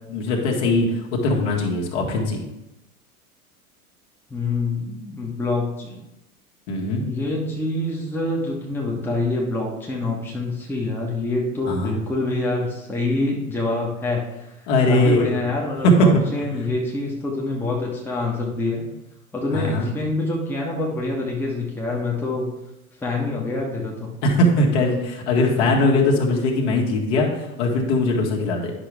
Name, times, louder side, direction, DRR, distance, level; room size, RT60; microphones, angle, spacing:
voice 1, 0.1-2.4 6.7-7.0 11.7-12.0 14.7-15.4 15.8-16.2 19.5-20.0 24.2-28.7, left 1 dB, 50° left, -1 dB, 1.9 m, -20 dB
voice 2, 4.3-6.1 7.0-14.5 14.8-18.9 19.3-22.5 23.0-24.1, left 2 dB, 5° left, -3 dB, 1.2 m, -26 dB
10.5 x 6.0 x 3.4 m, 0.93 s
figure-of-eight pair, 95°, 45 cm